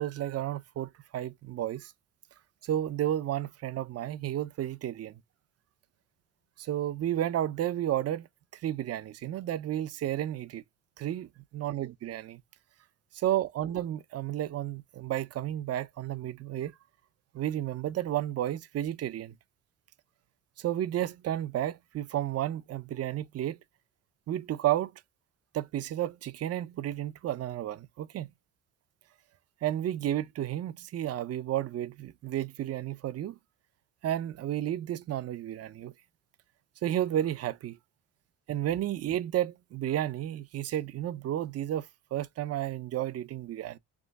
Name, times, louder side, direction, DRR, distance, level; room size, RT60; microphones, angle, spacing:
voice 1, 0.0-1.9 2.6-5.2 6.6-8.3 8.5-10.6 11.0-12.4 13.1-16.7 17.3-19.3 20.6-23.6 24.3-24.9 25.5-28.3 29.6-33.4 34.0-35.9 36.8-37.8 38.5-43.8, right 12 dB, 55° right, 0.6 m, -32 dB
3.6 x 3.0 x 4.0 m
cardioid pair, 90°, 30 cm